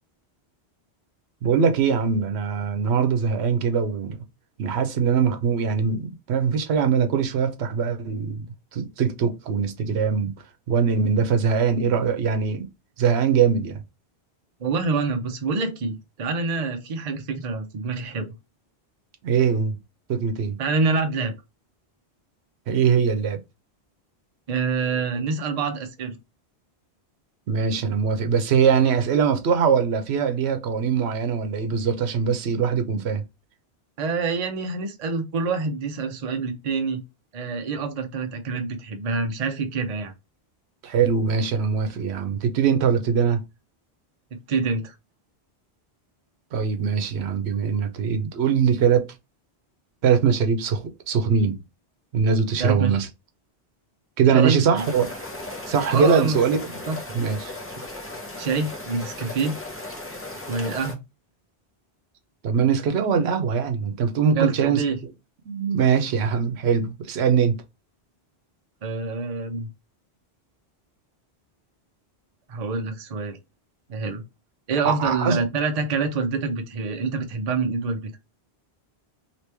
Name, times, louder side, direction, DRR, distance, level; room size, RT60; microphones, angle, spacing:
voice 1, 1.4-4.2 4.6-8.5 8.7-10.3 10.7-12.7 13.0-13.8 19.2-19.8 20.1-20.6 22.7-23.4 27.5-33.2 40.8-43.4 46.5-49.1 50.0-51.6 52.1-53.1 54.2-55.1 55.7-56.8 57.1-57.5 62.4-64.8 65.5-67.6 74.8-75.4, right 6 dB, 85° right, 0.9 m, -22 dB
voice 2, 14.6-18.3 20.6-21.3 24.5-26.1 34.0-37.0 37.3-40.1 44.3-44.9 52.6-53.0 54.3-54.8 55.9-56.4 56.9-57.0 58.4-59.6 60.5-61.0 64.4-65.0 68.8-69.7 72.5-73.4 73.9-74.2 74.7-78.0, right 4 dB, 45° right, 0.6 m, -26 dB
sound 1, 54.8-60.9, left 2 dB, 15° left, 0.6 m, -36 dB
3.0 x 2.9 x 3.3 m
omnidirectional pair, 1.1 m